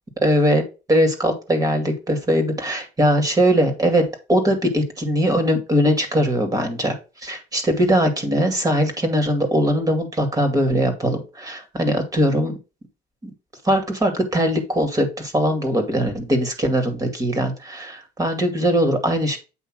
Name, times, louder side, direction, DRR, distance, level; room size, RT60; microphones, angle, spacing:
voice 1, 0.2-0.6 0.9-7.0 7.2-12.6 13.6-19.4, equal, 20° right, 5 dB, 2.3 m, -20 dB
8.3 x 3.2 x 6.2 m, 0.31 s
cardioid pair, 110°, 17 cm